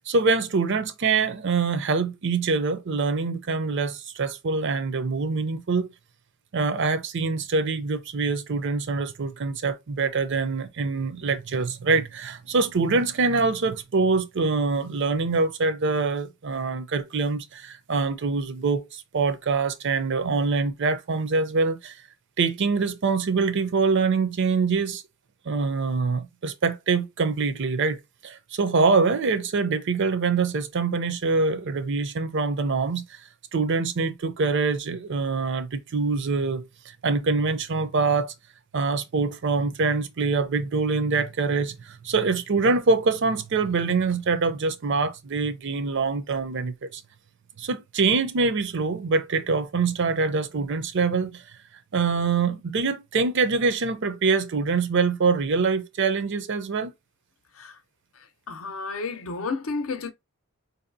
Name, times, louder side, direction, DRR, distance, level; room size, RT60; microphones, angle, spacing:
voice 1, 0.1-5.9 6.5-22.0 22.4-25.0 25.5-33.2 33.5-36.6 37.0-38.3 38.7-47.0 47.6-51.4 51.9-56.9, right 4 dB, 55° right, 0.5 m, -24 dB
voice 2, 58.5-60.1, left 4 dB, 70° left, 0.6 m, -31 dB
4.7 x 2.7 x 2.6 m
head